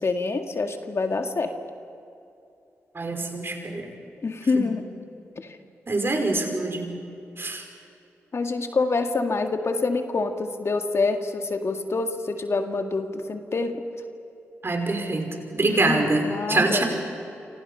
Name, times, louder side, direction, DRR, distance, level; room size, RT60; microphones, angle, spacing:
voice 1, 0.0-1.5 4.2-4.8 5.4-5.6 8.3-13.8 15.6-16.8, left 3 dB, 50° left, 5 dB, 2.1 m, -26 dB
voice 2, 2.9-3.9 4.5-4.7 5.9-6.9 7.4-7.6 14.6-16.8, right 2 dB, 40° right, 4 dB, 5.4 m, -25 dB
28.0 x 26.0 x 5.7 m, 2.7 s
supercardioid pair, 40°, 6 cm